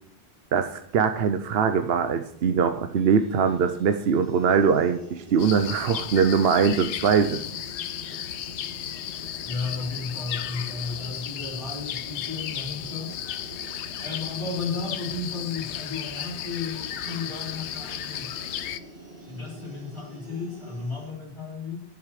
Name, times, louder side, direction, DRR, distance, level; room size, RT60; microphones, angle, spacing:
voice 1, 0.5-7.4, right 6 dB, 65° right, 8 dB, 0.9 m, -22 dB
sound 1, 2.9-21.2, right 1 dB, 45° right, 2.6 m, -46 dB
sound 2, 5.4-18.8, left 10 dB, 90° left, 0.9 m, -35 dB
voice 2, 9.4-13.1 14.0-18.6 19.3-21.7, left 4 dB, 25° left, -5 dB, 4.7 m, -34 dB
10.5 x 7.4 x 4.8 m, 0.73 s
omnidirectional pair, 1.1 m